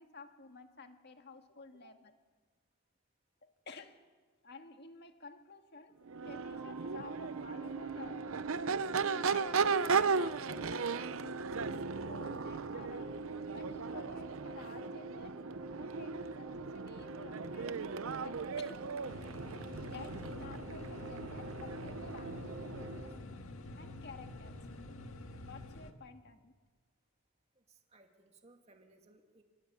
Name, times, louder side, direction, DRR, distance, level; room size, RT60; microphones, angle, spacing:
voice 1, 0.0-2.1 3.4-4.0 4.4-6.0 6.3-8.3 9.1-13.2 13.5-15.4 15.8-18.9 19.8-23.2 23.8-24.6 25.5-26.5, left 3 dB, 50° left, 6 dB, 1.8 m, -52 dB
Crowd / Race car auto racing / Accelerating revving vroom, 6.0-23.1, right 5 dB, 70° right, 0.7 m, -37 dB
sound 1, 6.4-23.2, equal, 10° right, 4.0 m, -52 dB
sound 2, 19.1-25.9, left 2 dB, 75° left, 1.8 m, -47 dB
voice 2, 27.6-29.4, right 2 dB, 30° right, 3 dB, 2.4 m, -63 dB
27.5 x 20.0 x 8.4 m, 1.4 s
head